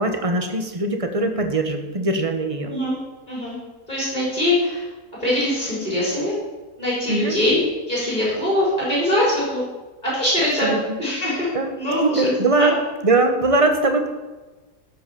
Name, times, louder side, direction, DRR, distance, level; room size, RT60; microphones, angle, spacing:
voice 1, 0.0-2.7 7.1-7.4 10.6-10.8 11.5-11.7 12.0-12.8 13.0-14.1, right 2 dB, 25° right, 5 dB, 1.1 m, -21 dB
voice 2, 2.7-3.0 3.3-3.6 3.9-4.8 5.2-6.3 6.8-7.6 7.9-9.6 10.0-10.7 11.0-11.5 11.7-12.7, left 1 dB, 30° left, -7 dB, 4.4 m, -22 dB
13.0 x 6.0 x 7.0 m, 1.2 s
omnidirectional pair, 1.6 m